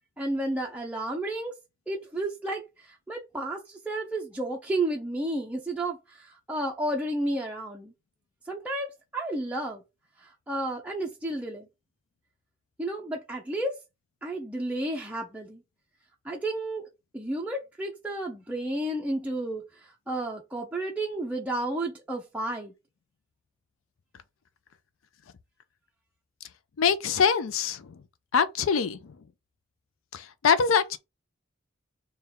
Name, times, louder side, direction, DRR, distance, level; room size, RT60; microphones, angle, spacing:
voice 1, 0.2-1.5 1.9-7.9 8.5-9.8 10.2-11.7 12.8-13.8 14.2-15.6 16.2-16.9 17.1-22.7, right 1 dB, 5° right, 0.4 m, -32 dB
voice 2, 26.8-27.8 28.3-29.1 30.1-31.0, left 6 dB, 75° left, 0.4 m, -24 dB
3.5 x 2.2 x 4.1 m
head